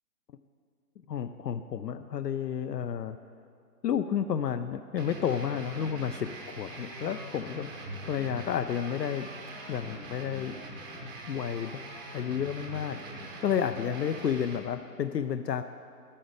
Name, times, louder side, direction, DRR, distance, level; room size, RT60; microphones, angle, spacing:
voice 1, 1.1-3.2 3.8-7.7 8.0-9.3 9.7-10.6 11.3-11.8 12.1-13.1 13.4-15.6, left 8 dB, 80° left, 9 dB, 0.6 m, -31 dB
sound 1, 5.0-14.6, right 1 dB, 15° right, 0.6 m, -42 dB
12.0 x 8.6 x 5.1 m, 2.5 s
figure-of-eight pair, 140°, 49 cm